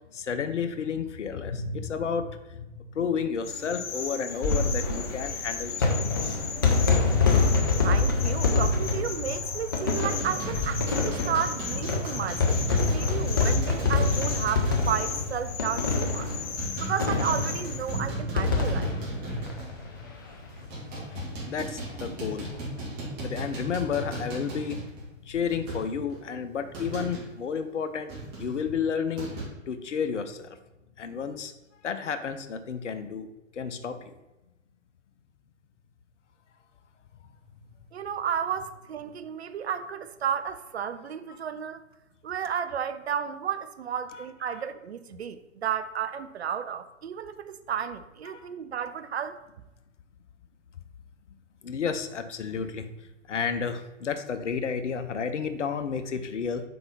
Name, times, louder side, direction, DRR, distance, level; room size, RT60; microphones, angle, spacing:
voice 1, 0.1-6.4 21.1-22.5 23.2-24.9 25.2-28.1 28.4-29.3 29.7-30.6 31.0-31.5 31.8-33.3 33.5-34.1 44.1-44.3 48.3-48.5 51.6-52.9 53.3-56.7, left 6 dB, 65° left, 0.7 m, -31 dB
sound 1, 3.4-18.1, left 6 dB, 50° left, 1.1 m, -37 dB
sound 2, 4.3-20.3 20.6-20.7 20.9-21.0 22.3-22.6, left 4 dB, 20° left, 0.4 m, -26 dB
voice 2, 7.8-16.3 16.8-19.0 37.9-41.8 42.2-49.4, right 8 dB, 55° right, 0.5 m, -32 dB
sound 3, 10.0-15.2 15.5-15.6 16.0-20.0 20.5-27.3 28.1-29.4, right 1 dB, 25° right, 1.9 m, -36 dB
4.7 x 3.9 x 5.3 m
figure-of-eight pair, 120°, 39 cm